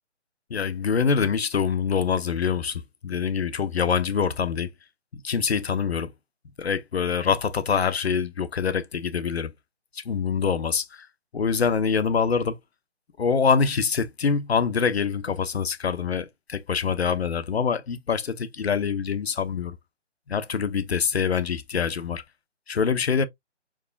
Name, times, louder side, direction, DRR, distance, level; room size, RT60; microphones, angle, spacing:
voice 1, 0.5-4.7 5.2-6.1 6.6-9.5 10.1-10.8 11.3-12.6 13.2-19.8 20.3-22.2 22.7-23.3, left 6 dB, 60° left, 0.8 m, -25 dB
4.8 x 3.1 x 2.6 m
hypercardioid pair, 170°, 35 cm